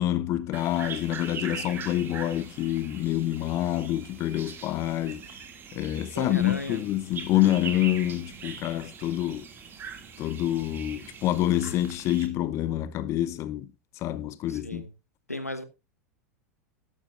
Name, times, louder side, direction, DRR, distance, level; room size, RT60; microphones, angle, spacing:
voice 1, 0.0-5.2 5.7-9.5 10.2-13.7 14.0-14.8, left 13 dB, 35° left, 0.8 m, -27 dB
sound 1, 0.5-12.3, right 6 dB, 25° right, 2.2 m, -42 dB
voice 2, 6.1-6.8 14.5-14.9 15.3-15.6, left 1 dB, 90° left, 1.2 m, -35 dB
13.0 x 11.5 x 2.5 m
figure-of-eight pair, 85°, 8 cm